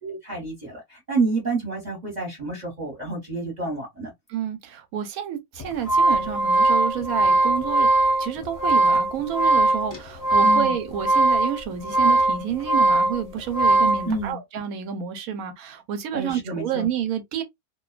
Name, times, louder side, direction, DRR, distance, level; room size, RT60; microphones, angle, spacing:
voice 1, 0.0-4.1 10.4-10.7 14.1-14.4 16.1-16.9, right 3 dB, 30° right, 1.1 m, -29 dB
voice 2, 4.3-7.9 8.2-17.4, right 9 dB, 75° right, 1.0 m, -29 dB
sound 1, 5.6-14.1, right 2 dB, 20° left, 0.5 m, -20 dB
2.5 x 2.2 x 2.3 m
omnidirectional pair, 1.6 m